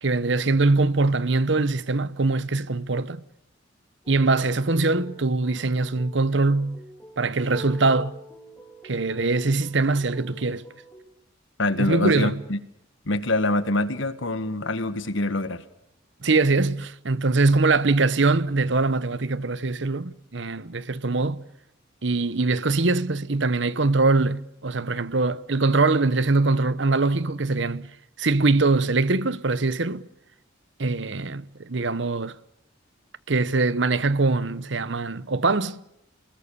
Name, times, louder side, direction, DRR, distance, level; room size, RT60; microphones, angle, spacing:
voice 1, 0.0-3.2 4.1-6.8 7.2-8.2 8.8-10.6 11.8-12.4 16.2-21.4 22.0-27.9 28.2-30.1 30.8-32.4 33.3-35.8, right 3 dB, 60° right, 1.0 m, -22 dB
sound 1, 4.0-11.0, right 1 dB, 10° left, 3.0 m, -46 dB
voice 2, 11.6-12.6 13.0-15.6, left 2 dB, 70° left, 1.7 m, -25 dB
28.0 x 21.0 x 6.9 m
head